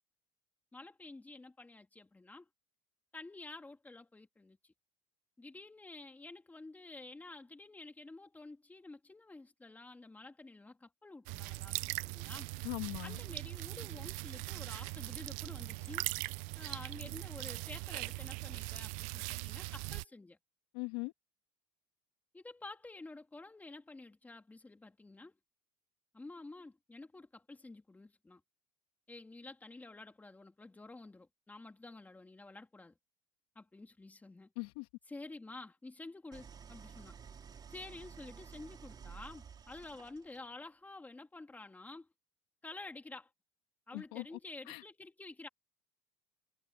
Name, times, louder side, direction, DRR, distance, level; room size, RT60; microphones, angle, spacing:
voice 1, 0.7-2.5 3.1-4.7 5.4-12.5 13.0-16.1 16.5-20.4 22.3-25.3 26.1-28.4 29.1-33.0 33.5-34.5 35.1-37.2 37.7-42.1 42.6-43.3 43.9-45.5, left 2 dB, 10° left, 2.9 m, -50 dB
sound 1, 11.3-20.0, right 25 dB, 70° right, 0.7 m, -40 dB
voice 2, 12.6-13.2 20.7-21.1 34.6-34.9 43.9-44.4 44.7-44.8, left 28 dB, 75° left, 2.4 m, -40 dB
Idling, 36.3-40.5, right 6 dB, 30° right, 3.5 m, -52 dB
supercardioid pair, 100°, 13 cm